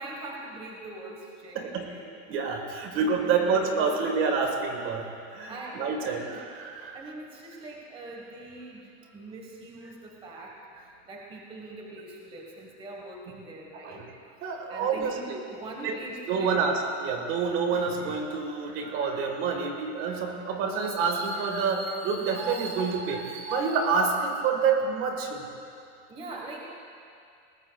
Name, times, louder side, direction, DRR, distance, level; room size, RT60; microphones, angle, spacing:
voice 1, 0.0-2.0 2.9-3.6 3.9-4.0 4.4-4.5 5.5-6.5 6.9-14.0 14.7-16.6 26.1-26.6, right 2 dB, 15° right, -1 dB, 1.3 m, -42 dB
voice 2, 1.5-1.9 2.3-5.1 5.3-6.2 6.6-7.0 13.8-14.0 14.4-15.4 15.8-16.0 16.3-25.5, right 5 dB, 35° right, 3 dB, 1.5 m, -27 dB
21.5 x 19.0 x 2.3 m, 2.4 s
supercardioid pair, 165°, 34 cm